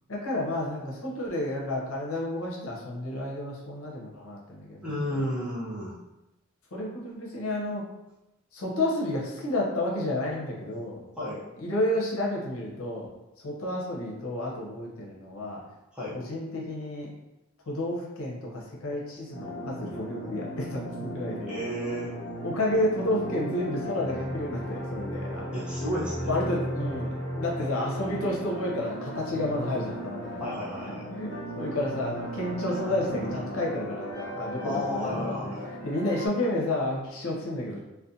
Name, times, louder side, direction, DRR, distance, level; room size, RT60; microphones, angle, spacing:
voice 1, 0.1-5.2 6.7-7.8 8.5-11.0 11.6-13.1 13.4-15.6 16.1-17.1 17.7-21.6 22.4-25.6 26.2-30.4 31.1-35.5 35.8-37.8, left 1 dB, 75° left, -2 dB, 0.6 m, -31 dB
voice 2, 4.8-6.0 11.2-11.4 15.9-16.2 21.4-22.1 25.5-26.3 30.4-31.0 34.6-35.7, equal, 5° right, -8 dB, 0.5 m, -32 dB
sound 1, 19.3-36.3, equal, 20° left, 0.8 m, -36 dB
2.5 x 2.1 x 2.6 m, 0.95 s
head